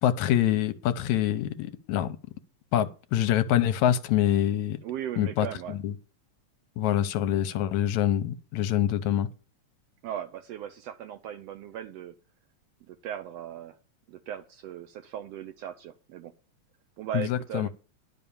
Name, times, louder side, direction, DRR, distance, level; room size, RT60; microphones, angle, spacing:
voice 1, 0.0-2.1 2.7-4.8 5.2-5.5 5.8-5.9 6.8-9.3 17.1-17.7, left 11 dB, 80° left, 2.0 m, -25 dB
voice 2, 4.8-5.8 10.0-12.1 12.9-13.8 14.1-16.3 17.0-17.7, right 10 dB, 75° right, 1.5 m, -38 dB
11.0 x 5.4 x 7.0 m
omnidirectional pair, 3.4 m